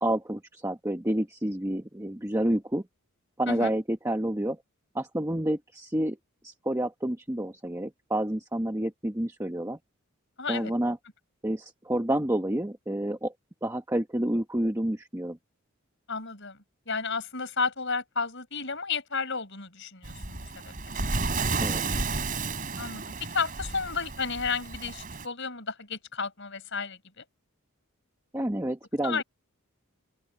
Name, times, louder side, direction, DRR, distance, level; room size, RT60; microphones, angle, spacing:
voice 1, 0.0-2.8 3.4-4.6 4.9-6.2 6.4-9.8 10.5-11.0 11.4-13.3 13.6-15.4 21.6-21.8 28.3-29.2, right 1 dB, 15° right, 1.1 m, -29 dB
voice 2, 10.4-10.7 16.1-16.6 16.9-20.9 22.8-27.2 29.0-29.2, left 5 dB, 55° left, 5.6 m, -32 dB
Waves surf, 20.0-25.3, right 3 dB, 40° right, 3.6 m, -32 dB
open air
head